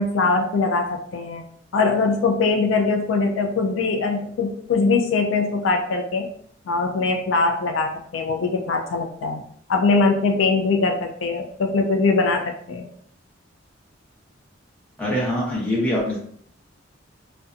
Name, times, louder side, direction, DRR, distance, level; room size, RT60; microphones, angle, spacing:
voice 1, 0.0-1.4 1.7-6.3 6.7-9.4 9.7-12.9, left 3 dB, 85° left, 4 dB, 0.4 m, -22 dB
voice 2, 15.0-16.2, left 1 dB, 5° left, -5 dB, 0.8 m, -23 dB
2.6 x 2.2 x 2.4 m, 0.63 s
head